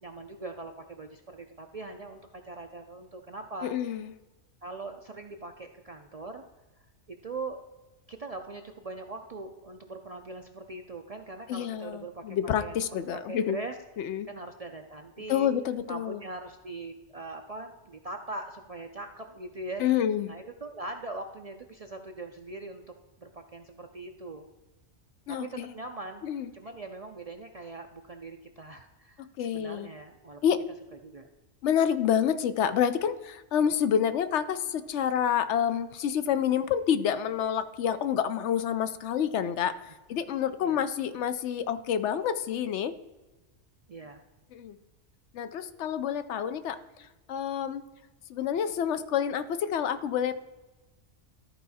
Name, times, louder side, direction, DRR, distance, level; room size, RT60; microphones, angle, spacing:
voice 1, 0.0-3.7 4.6-6.4 7.1-7.6 8.1-13.8 14.3-15.5 15.9-19.8 20.3-22.8 23.2-24.5 25.3-26.3 26.5-30.4 31.0-31.3 40.6-40.8 43.9-44.2, right 3 dB, 45° right, 5 dB, 0.5 m, -41 dB
voice 2, 3.6-4.1 11.5-13.6 14.0-14.3 15.3-16.2 19.8-20.3 25.3-25.7 26.2-26.5 29.4-29.9 30.4-30.6 31.6-39.7 40.1-42.9 44.5-44.7 45.3-46.8 47.3-47.8 48.3-50.4, left 9 dB, 75° left, 12 dB, 0.9 m, -28 dB
13.0 x 4.7 x 4.1 m, 1.1 s
omnidirectional pair, 1.2 m